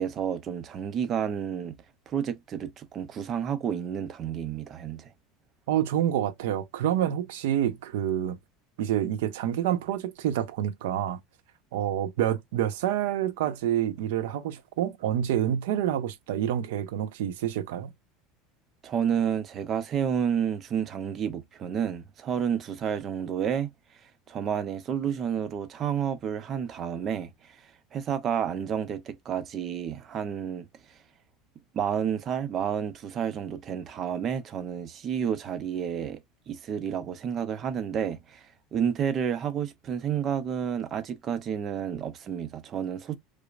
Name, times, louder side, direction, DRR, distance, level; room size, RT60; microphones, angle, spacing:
voice 1, 0.0-1.8 2.1-5.1 18.8-23.7 24.0-31.0 31.7-36.2 36.5-43.2, right 8 dB, 25° right, 0.5 m, -30 dB
voice 2, 5.7-8.4 8.8-11.2 11.7-17.9, right 11 dB, 90° right, 0.8 m, -28 dB
4.9 x 2.0 x 2.4 m
cardioid pair, 180°, 0 cm